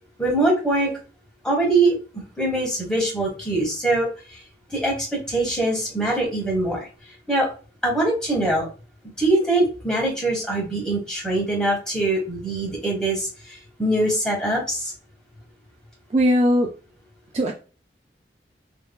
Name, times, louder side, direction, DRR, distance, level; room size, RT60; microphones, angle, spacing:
voice 1, 0.2-0.9 1.4-4.1 4.7-6.9 7.3-7.5 7.8-8.6 9.2-13.3 13.8-14.9, right 2 dB, 5° left, -3 dB, 1.2 m, -23 dB
voice 2, 16.1-16.7 17.3-17.5, equal, 35° right, 1 dB, 0.3 m, -19 dB
3.7 x 2.2 x 2.3 m, 0.35 s
head